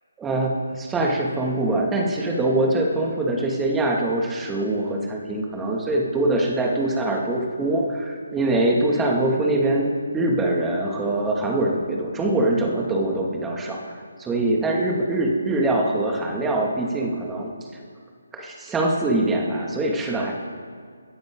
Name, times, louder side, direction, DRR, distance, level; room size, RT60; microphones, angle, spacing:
voice 1, 0.2-9.9 10.1-17.5 18.3-20.3, right 2 dB, 10° right, -1 dB, 2.3 m, -23 dB
25.5 x 10.5 x 4.0 m, 2.2 s
figure-of-eight pair, 150°, 0 cm